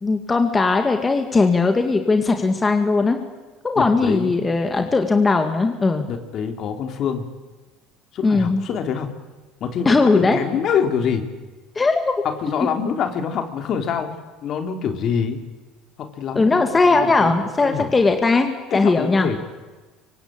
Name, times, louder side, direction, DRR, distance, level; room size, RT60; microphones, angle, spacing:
voice 1, 0.0-3.2 3.6-6.1 8.2-8.6 9.9-10.4 11.8-12.1 16.4-19.3, left 3 dB, 20° left, 5 dB, 2.2 m, -18 dB
voice 2, 3.7-4.3 6.1-7.3 8.1-9.1 9.6-11.3 12.2-14.2 14.4-15.4 16.0-17.9 18.7-19.4, left 7 dB, 50° left, 6 dB, 3.4 m, -25 dB
25.5 x 25.0 x 8.9 m, 1.2 s
cardioid pair, 125°, 0 cm